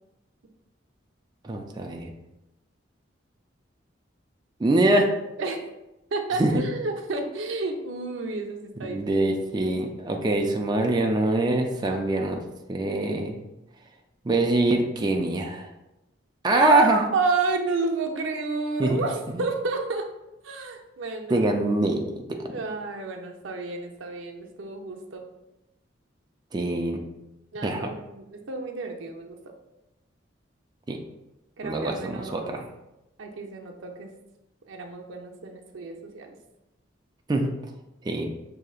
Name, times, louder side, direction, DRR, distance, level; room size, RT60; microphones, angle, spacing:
voice 1, 1.4-2.1 4.6-5.1 6.4-6.6 8.8-12.4 12.7-13.4 14.2-15.7 16.4-17.1 18.8-19.0 19.3-19.4 21.3-22.4 26.5-27.0 27.6-27.9 30.9-31.0 31.6-32.7 37.3-37.5 38.0-38.3, right 2 dB, 20° right, 2 dB, 0.3 m, -24 dB
voice 2, 6.1-9.7 16.5-20.0 20.4-21.4 22.5-25.2 27.5-29.4 31.6-32.6 33.2-34.1 34.7-36.4, right 3 dB, 85° right, 2 dB, 0.6 m, -30 dB
6.2 x 2.7 x 2.4 m, 0.94 s
head